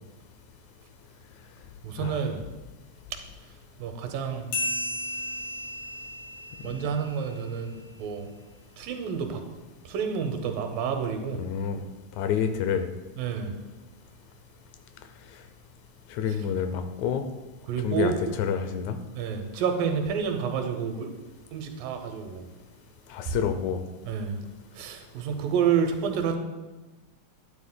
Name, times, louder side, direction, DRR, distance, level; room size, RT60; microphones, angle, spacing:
voice 1, 1.8-2.4 3.1-3.2 3.8-4.5 6.6-8.3 8.8-9.4 9.9-11.4 13.2-13.5 16.3-16.5 17.7-18.3 19.1-21.1 21.5-22.5 23.3-23.4 24.0-24.4 24.7-26.4, right 7 dB, 90° right, 5 dB, 2.6 m, -29 dB
sound 1, 4.5-7.6, left 1 dB, 65° left, 3.1 m, -34 dB
voice 2, 11.4-11.8 12.2-12.9 16.1-17.2 17.8-18.1 18.4-19.0 23.1-23.8, left 7 dB, 90° left, 8 dB, 1.6 m, -28 dB
12.5 x 9.3 x 2.2 m, 1.1 s
omnidirectional pair, 3.9 m